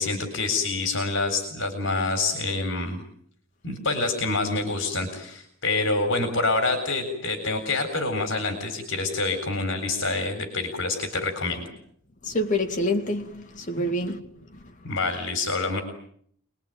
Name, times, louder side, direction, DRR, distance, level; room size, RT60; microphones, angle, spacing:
voice 1, 0.0-3.0 3.6-11.6 13.8-13.9 14.8-15.8, left 3 dB, 65° left, 3.9 m, -27 dB
voice 2, 12.2-14.3 14.5-14.6, left 1 dB, 40° left, 2.6 m, -27 dB
27.0 x 21.0 x 9.0 m
head